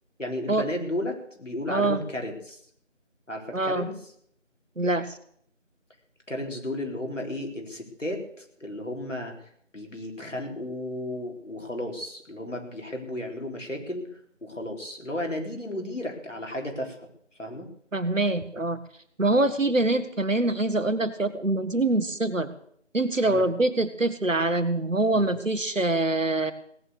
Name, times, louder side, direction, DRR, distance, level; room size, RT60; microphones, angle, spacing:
voice 1, 0.2-2.6 3.3-3.9 6.3-17.0 17.4-17.7 23.2-23.5 25.1-25.3, left 1 dB, 75° left, 1 dB, 4.2 m, -34 dB
voice 2, 1.7-2.0 3.5-3.9 4.8-5.2 17.9-18.8 19.2-22.5 22.9-26.5, right 2 dB, 90° right, 11 dB, 1.8 m, -24 dB
17.5 x 9.5 x 6.6 m, 0.66 s
figure-of-eight pair, 175°, 37 cm